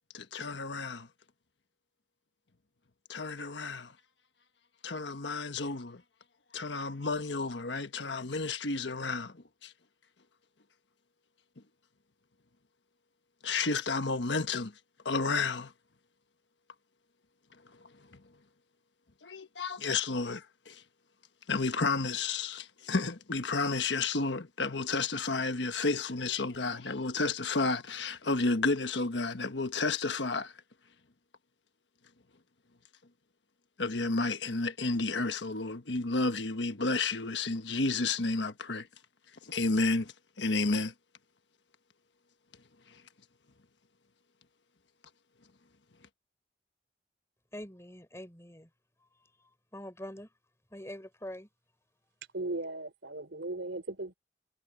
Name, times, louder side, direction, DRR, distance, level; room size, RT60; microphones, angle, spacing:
voice 1, 0.1-1.1 3.1-3.9 4.8-6.0 6.5-9.7 13.4-14.7 15.0-15.7 17.8-18.2 19.2-20.8 21.5-30.5 33.8-38.9 39.4-40.9 42.9-43.0, left 3 dB, 80° left, 1.3 m, -31 dB
voice 2, 47.5-48.7 49.7-50.3 50.7-51.5, left 1 dB, 15° left, 4.4 m, -44 dB
voice 3, 52.3-54.1, right 2 dB, 90° right, 3.5 m, -37 dB
head